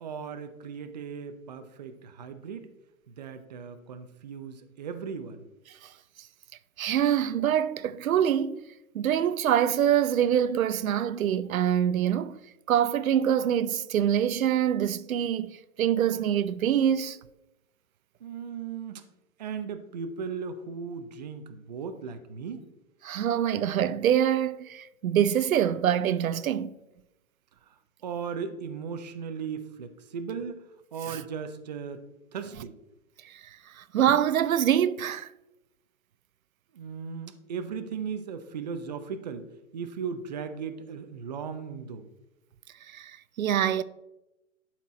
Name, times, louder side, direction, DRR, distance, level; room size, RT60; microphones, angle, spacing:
voice 1, 0.0-2.7 3.2-5.4 18.2-19.0 19.4-22.6 28.0-30.6 30.9-32.0 32.3-32.7 36.7-39.5 39.7-42.1, right 6 dB, 30° right, 0.6 m, -37 dB
voice 2, 6.8-8.6 8.9-12.4 12.7-17.2 23.0-26.7 31.0-31.2 33.2-35.3 42.9-43.8, right 10 dB, 80° right, 0.6 m, -25 dB
11.5 x 4.5 x 4.2 m
hypercardioid pair, 165°, 41 cm